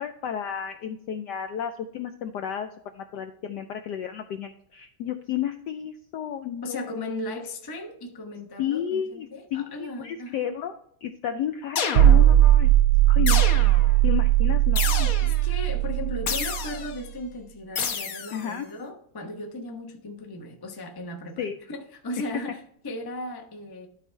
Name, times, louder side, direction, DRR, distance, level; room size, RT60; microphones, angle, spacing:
voice 1, 0.0-2.7 2.9-6.8 8.6-10.7 11.0-12.7 13.1-13.5 14.0-15.1 18.3-18.7 21.4-21.6, left 9 dB, 80° left, 7 dB, 0.9 m, -32 dB
voice 2, 6.6-10.5 15.2-23.9, left 1 dB, 30° left, 3 dB, 0.4 m, -36 dB
sound 1, 11.8-12.5 13.3-14.0 14.8-15.5 16.3-17.0 17.8-18.5, left 6 dB, 55° left, 1.0 m, -30 dB
sound 2, 11.9-17.0, right 13 dB, 90° right, 1.5 m, -19 dB
12.0 x 4.2 x 4.5 m, 0.69 s
omnidirectional pair, 2.3 m